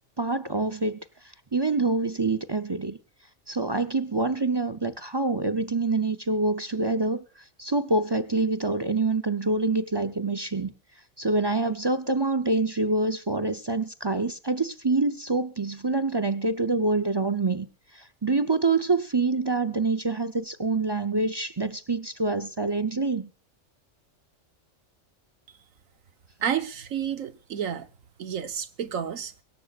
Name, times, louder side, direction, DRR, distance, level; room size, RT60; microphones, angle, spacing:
voice 1, 0.2-1.0 1.5-3.0 3.5-7.2 7.6-10.7 11.2-17.7 18.2-23.3, right 3 dB, 35° right, 0.4 m, -26 dB
voice 2, 26.4-27.9 28.2-29.3, right 8 dB, 80° right, 1.5 m, -30 dB
23.5 x 13.0 x 2.4 m
omnidirectional pair, 1.4 m